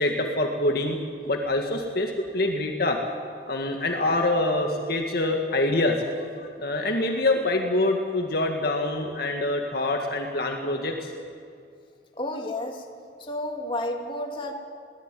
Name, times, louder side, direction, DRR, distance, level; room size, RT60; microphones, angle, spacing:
voice 1, 0.0-3.0 3.5-11.1, left 2 dB, 55° left, 2 dB, 1.9 m, -25 dB
voice 2, 12.2-12.8 13.2-14.5, left 1 dB, 30° left, 1 dB, 2.6 m, -31 dB
22.5 x 18.0 x 9.2 m, 2.3 s
head